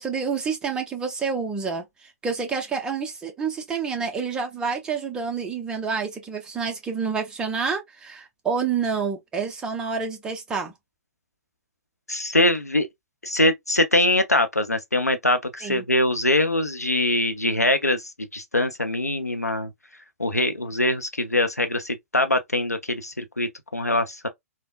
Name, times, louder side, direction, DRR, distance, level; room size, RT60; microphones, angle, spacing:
voice 1, 0.0-10.7 15.6-15.8, right 5 dB, 10° right, 0.6 m, -28 dB
voice 2, 12.1-12.9 13.2-19.7 20.2-24.3, left 1 dB, 90° left, 0.5 m, -23 dB
3.3 x 2.1 x 2.2 m
figure-of-eight pair, 120°, 8 cm